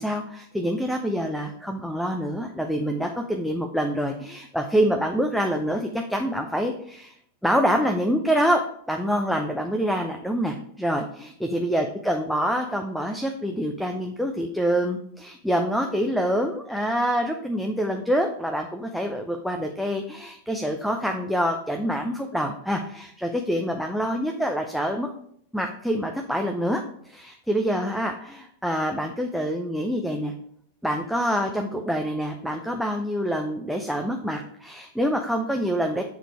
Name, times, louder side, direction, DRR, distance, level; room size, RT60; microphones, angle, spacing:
voice 1, 0.0-7.1 7.4-8.6 8.9-25.1 25.5-30.3 30.8-36.0, equal, ahead, 3 dB, 0.5 m, -26 dB
6.4 x 3.9 x 4.6 m, 0.66 s
figure-of-eight pair, 90°, 0 cm